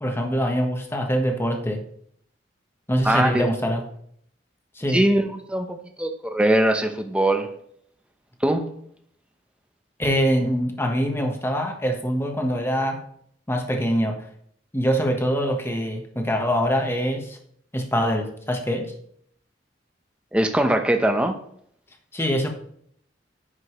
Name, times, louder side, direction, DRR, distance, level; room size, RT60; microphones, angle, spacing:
voice 1, 0.0-1.8 2.9-3.8 4.8-5.0 10.0-13.0 13.5-14.2 14.7-17.4 17.7-18.9 22.1-22.5, equal, 15° left, 3 dB, 1.3 m, -24 dB
voice 2, 3.0-3.5 4.9-7.5 8.4-8.7 20.3-21.4, right 1 dB, 5° right, 5 dB, 0.9 m, -21 dB
9.9 x 9.9 x 3.1 m, 0.66 s
head